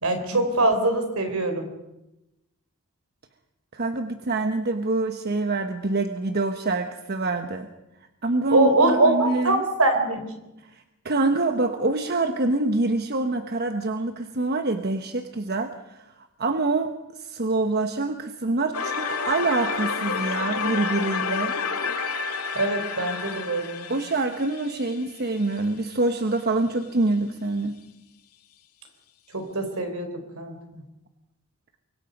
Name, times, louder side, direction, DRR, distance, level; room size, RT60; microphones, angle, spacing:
voice 1, 0.0-1.7 8.5-10.2 22.5-23.9 29.3-30.8, right 2 dB, 70° right, 6 dB, 4.0 m, -23 dB
voice 2, 3.7-7.7 8.2-9.6 10.7-21.5 23.9-27.8, right 2 dB, 50° right, 7 dB, 1.1 m, -26 dB
sound 1, 18.7-25.6, left 5 dB, 85° left, 2.0 m, -30 dB
25.0 x 22.5 x 5.3 m, 0.94 s
head